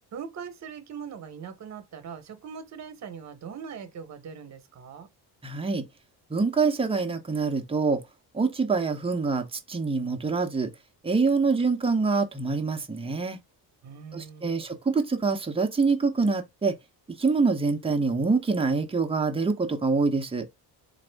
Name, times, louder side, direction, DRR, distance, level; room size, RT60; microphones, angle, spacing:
voice 1, 0.1-5.1 13.8-14.6, right 7 dB, 45° right, 1.0 m, -41 dB
voice 2, 5.4-5.9 6.3-8.0 8.3-10.7 11.0-13.4 14.1-16.8 17.1-20.5, right 4 dB, 15° right, 0.7 m, -25 dB
4.1 x 2.6 x 3.4 m
cardioid pair, 130°, 39 cm